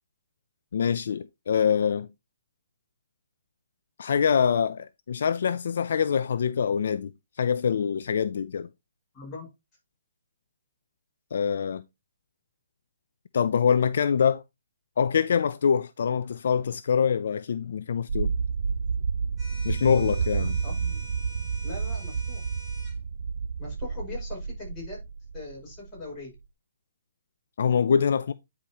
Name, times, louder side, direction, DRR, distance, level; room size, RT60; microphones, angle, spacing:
voice 1, 0.7-2.1 4.0-7.1 7.4-8.7 11.3-11.8 13.3-14.4 15.0-18.3 19.6-20.6 27.6-28.3, left 7 dB, 60° left, 0.5 m, -24 dB
voice 2, 9.1-9.5 20.6-21.0 21.6-22.4 23.6-25.0 25.3-26.3, left 3 dB, 15° left, 6.0 m, -40 dB
sound 1, 18.1-26.2, right 5 dB, 65° right, 0.5 m, -30 dB
sound 2, 19.4-23.0, right 1 dB, 5° right, 3.5 m, -45 dB
10.5 x 5.0 x 3.0 m
hypercardioid pair, 165°, 0 cm